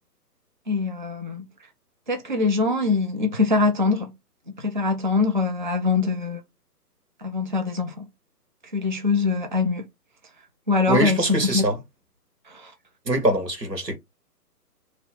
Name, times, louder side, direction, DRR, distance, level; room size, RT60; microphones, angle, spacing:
voice 1, 0.7-1.4 2.1-4.1 4.6-6.4 7.2-8.1 8.7-9.8 10.7-11.6 12.5-12.7, left 4 dB, 35° right, 0.4 m, -23 dB
voice 2, 10.9-11.8 13.1-14.0, right 1 dB, 85° right, 1.6 m, -23 dB
3.0 x 3.0 x 3.8 m
figure-of-eight pair, 135°, 48 cm